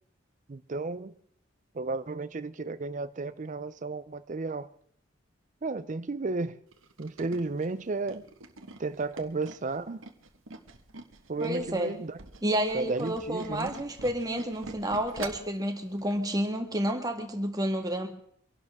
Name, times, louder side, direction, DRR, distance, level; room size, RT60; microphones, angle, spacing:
voice 1, 0.5-1.1 1.7-4.7 5.6-6.6 7.0-8.3 8.8-10.1 11.3-12.2 12.7-13.8, right 3 dB, 40° right, 0.5 m, -33 dB
Tools, 6.7-11.7 12.1-15.6 16.0-16.2 16.5-16.6, right 3 dB, 85° right, 1.4 m, -44 dB
voice 2, 11.4-11.9 12.4-18.1, equal, 20° right, 1.6 m, -30 dB
25.0 x 11.5 x 3.6 m
head